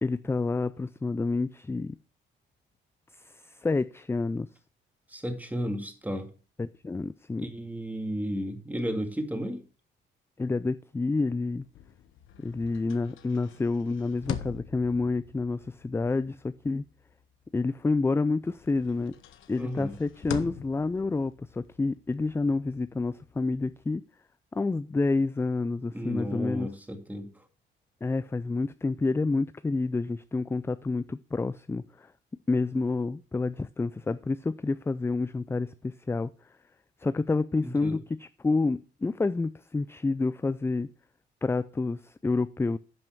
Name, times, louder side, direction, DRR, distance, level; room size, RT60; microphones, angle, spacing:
voice 1, 0.0-2.0 3.2-4.5 6.6-7.5 10.4-11.6 12.4-16.8 17.5-19.1 19.5-24.0 24.5-26.7 28.0-32.1 32.5-36.3 37.0-40.9 41.4-42.8, left 3 dB, 10° left, 0.3 m, -29 dB
voice 2, 5.1-6.3 7.4-9.6 19.6-20.0 25.9-27.3 37.6-38.0, equal, 10° right, 2.1 m, -33 dB
sound 1, 11.6-18.1 18.4-23.8, left 9 dB, 80° left, 1.0 m, -44 dB
11.0 x 5.6 x 4.5 m
cardioid pair, 90°, 20 cm